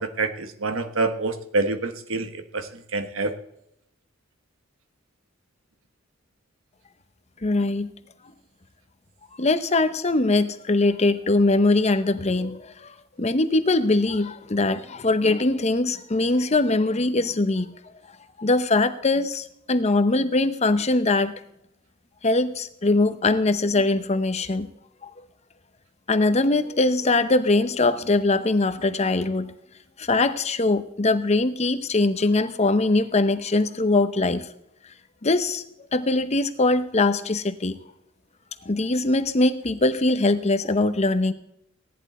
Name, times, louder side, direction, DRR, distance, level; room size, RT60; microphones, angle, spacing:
voice 1, 0.0-3.3, right 3 dB, 75° right, 9 dB, 1.3 m, -27 dB
voice 2, 7.4-7.9 9.4-12.9 13.2-17.7 18.4-21.3 22.2-24.7 25.0-25.1 26.1-29.5 30.0-34.5 35.2-35.6 35.9-37.8 38.6-41.3, left 2 dB, 30° left, 11 dB, 0.8 m, -22 dB
16.5 x 10.5 x 4.3 m, 0.76 s
head